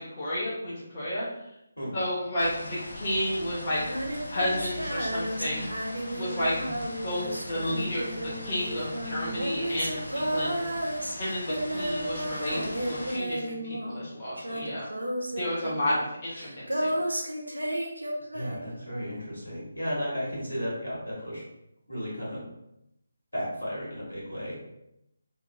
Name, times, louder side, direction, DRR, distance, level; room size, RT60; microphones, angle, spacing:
voice 1, 0.1-1.2 1.9-3.8 4.3-5.7 6.1-6.7 7.0-10.7 11.2-14.9 15.3-17.0, left 1 dB, 35° left, -8 dB, 0.8 m, -31 dB
sound 1, 2.4-13.2, left 1 dB, 65° left, 0.5 m, -40 dB
Female singing, 3.8-14.1 14.4-18.8, right 1 dB, 80° right, 0.5 m, -33 dB
voice 2, 18.3-21.4 21.9-22.4 23.3-24.6, equal, 85° left, -6 dB, 1.4 m, -34 dB
2.8 x 2.2 x 2.5 m, 0.85 s
figure-of-eight pair, 150°, 0 cm